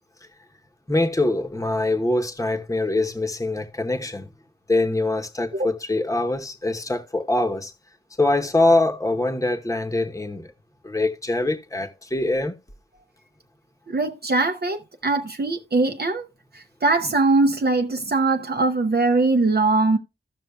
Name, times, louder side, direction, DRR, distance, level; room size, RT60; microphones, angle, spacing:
voice 1, 0.9-4.3 4.7-7.7 8.2-10.5 10.8-12.6, left 2 dB, 15° left, 1.0 m, -23 dB
voice 2, 13.9-16.3 16.5-20.0, right 3 dB, 55° right, 0.7 m, -21 dB
15.5 x 6.0 x 2.3 m
wide cardioid pair, 60°, 20 cm